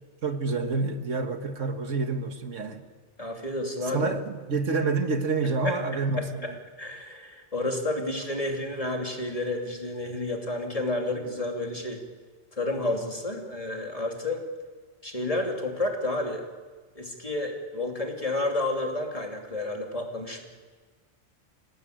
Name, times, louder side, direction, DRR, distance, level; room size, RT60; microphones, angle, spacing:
voice 1, 0.2-2.9 3.8-6.5, right 4 dB, 80° right, 7 dB, 1.9 m, -28 dB
voice 2, 3.2-4.1 5.6-5.8 6.2-6.5 6.8-12.0 12.6-14.4 15.0-16.5 17.0-20.5, left 2 dB, 30° left, 1 dB, 2.9 m, -30 dB
27.5 x 18.0 x 9.3 m, 1.4 s
omnidirectional pair, 1.3 m